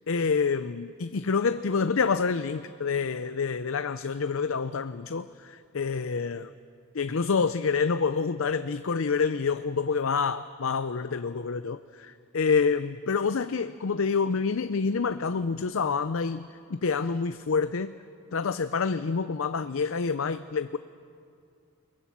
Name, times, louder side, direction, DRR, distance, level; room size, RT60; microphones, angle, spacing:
voice 1, 0.1-6.5 6.9-17.9 18.3-20.8, left 5 dB, 75° left, 12 dB, 0.6 m, -27 dB
29.0 x 20.0 x 7.4 m, 2.4 s
head